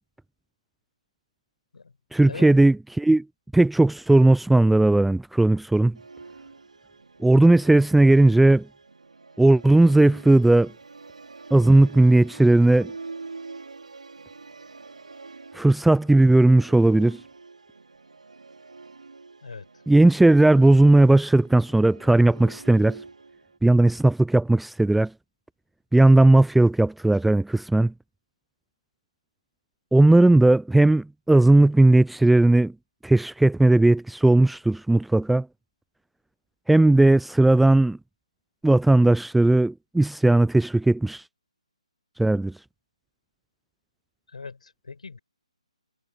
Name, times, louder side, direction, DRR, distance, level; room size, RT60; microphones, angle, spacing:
voice 1, 2.1-3.2 3.5-6.0 7.2-8.7 9.4-10.7 11.5-12.9 15.5-17.2 19.9-23.0 23.6-25.1 25.9-27.9 29.9-32.7 33.0-35.5 36.7-38.0 38.6-41.2 42.2-42.5, right 2 dB, ahead, 0.3 m, -17 dB
Musical instrument, 5.9-23.6, right 4 dB, 75° right, 5.0 m, -45 dB
voice 2, 44.3-45.2, left 4 dB, 70° left, 5.0 m, -40 dB
figure-of-eight pair, 145°, 4 cm